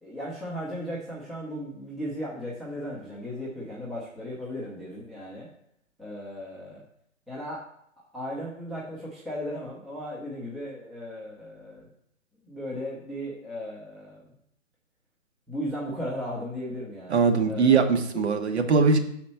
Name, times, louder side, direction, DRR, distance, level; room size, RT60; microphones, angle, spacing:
voice 1, 0.0-5.5 6.0-6.8 7.3-7.6 8.1-11.9 12.4-14.3 15.5-17.8 18.1-18.2, equal, ahead, -6 dB, 0.7 m, -36 dB
voice 2, 17.1-19.0, right 5 dB, 55° right, 5 dB, 1.3 m, -21 dB
5.9 x 4.3 x 5.7 m, 0.70 s
figure-of-eight pair, 135°, 39 cm